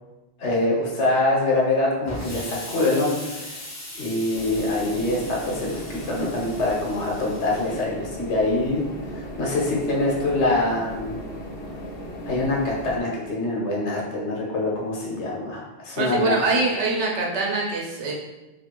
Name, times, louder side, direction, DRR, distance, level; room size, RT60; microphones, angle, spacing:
voice 1, 0.4-3.6 3.9-8.8 9.1-11.2 12.2-16.4, left 2 dB, 90° left, -3 dB, 1.1 m, -24 dB
Explosion, 2.1-7.8, left 1 dB, 30° left, 0.3 m, -39 dB
sound 1, 4.3-13.0, equal, 65° left, 0.8 m, -36 dB
voice 2, 15.9-18.1, right 3 dB, 85° right, -2 dB, 1.0 m, -24 dB
2.7 x 2.5 x 2.9 m, 1.1 s
omnidirectional pair, 1.1 m